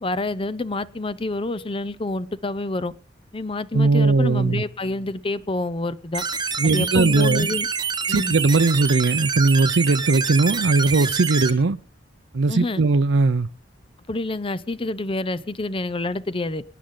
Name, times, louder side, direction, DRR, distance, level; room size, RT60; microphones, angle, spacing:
voice 1, 0.0-2.9 3.3-6.2 6.6-7.7 8.1-8.3 12.5-12.8 14.1-16.6, left 2 dB, 30° left, 0.7 m, -27 dB
voice 2, 3.7-4.6 6.6-7.5 8.1-11.8 12.3-13.5, right 3 dB, 70° right, 0.6 m, -19 dB
sound 1, 6.1-11.5, right 6 dB, 25° right, 1.1 m, -26 dB
25.5 x 10.0 x 3.8 m
head